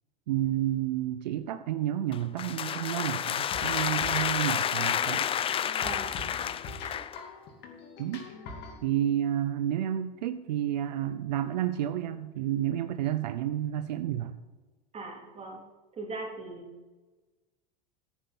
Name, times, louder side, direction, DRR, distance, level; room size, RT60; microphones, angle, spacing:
voice 1, 0.3-5.3 8.0-8.2 8.8-14.4, right 11 dB, 85° right, 11 dB, 0.6 m, -30 dB
sound 1, 2.1-7.2, left 9 dB, 25° left, 0.4 m, -30 dB
sound 2, 3.5-8.8, left 3 dB, 50° left, 2.7 m, -44 dB
voice 2, 5.8-6.2 14.9-15.6 15.9-16.7, right 2 dB, 30° right, 1 dB, 3.3 m, -39 dB
10.0 x 9.6 x 5.3 m, 1.3 s
hypercardioid pair, 100°, 21 cm